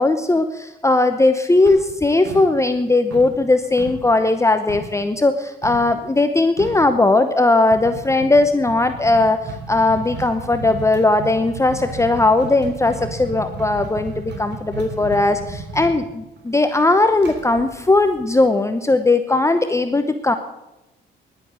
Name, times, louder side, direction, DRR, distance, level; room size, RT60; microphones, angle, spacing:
voice 1, 0.0-20.3, left 2 dB, 15° left, 8 dB, 0.9 m, -18 dB
sound 1, 1.7-2.8 3.1-5.0 5.6-5.9 6.2-6.3 6.6-6.9 7.7-18.5, right 3 dB, 60° right, 3.2 m, -34 dB
11.0 x 10.0 x 7.9 m, 0.97 s
cardioid pair, 90°, 20 cm